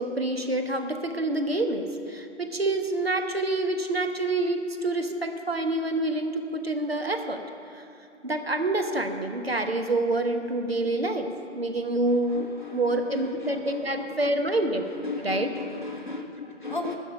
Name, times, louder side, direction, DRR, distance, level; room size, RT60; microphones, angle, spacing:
voice 1, 0.0-7.4 7.7-7.8 8.2-14.8 15.2-15.5, right 2 dB, 55° right, 6 dB, 1.1 m, -27 dB
voice 2, 12.3-14.4 15.0-17.0, left 3 dB, 40° left, 1 dB, 1.2 m, -36 dB
12.5 x 5.9 x 9.0 m, 2.8 s
figure-of-eight pair, 175°, 36 cm